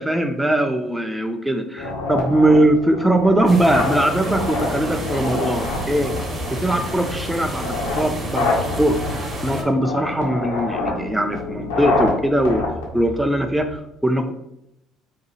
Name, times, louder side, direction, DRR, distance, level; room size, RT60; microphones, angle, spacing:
voice 1, 0.0-6.1 6.5-8.5 8.8-9.0 9.4-12.6 12.9-14.3, right 1 dB, 5° right, 5 dB, 0.3 m, -20 dB
sound 1, 1.8-13.8, left 3 dB, 85° left, 0.5 m, -27 dB
sound 2, 3.5-9.6, equal, 30° right, 0.8 m, -29 dB
2.7 x 2.3 x 2.7 m, 0.82 s
hypercardioid pair, 60°, 0 cm